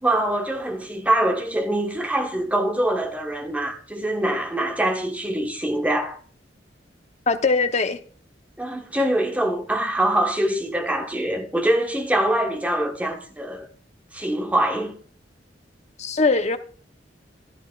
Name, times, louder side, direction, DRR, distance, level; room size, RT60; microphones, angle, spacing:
voice 1, 0.0-6.2 8.6-13.7 14.1-15.0, right 1 dB, 10° right, 1.3 m, -24 dB
voice 2, 7.3-8.0 16.0-16.6, left 3 dB, 40° left, 0.8 m, -21 dB
15.0 x 11.5 x 2.4 m
head